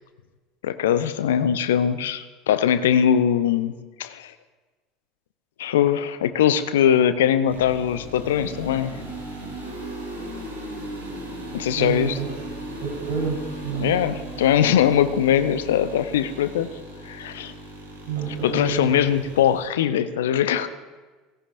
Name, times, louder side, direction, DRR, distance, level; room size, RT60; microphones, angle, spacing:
voice 1, 0.6-3.7 4.0-4.3 5.6-9.0 11.5-12.2 13.7-16.7 17.0-17.5 18.4-20.7, left 9 dB, 65° left, 12 dB, 0.7 m, -21 dB
sound 1, 7.5-19.6, right 1 dB, 80° right, 3.3 m, -37 dB
voice 2, 11.8-12.3 12.8-14.0 18.1-19.1, right 6 dB, 55° right, -5 dB, 4.1 m, -29 dB
17.5 x 16.5 x 2.6 m, 1.3 s
figure-of-eight pair, 70°, 0 cm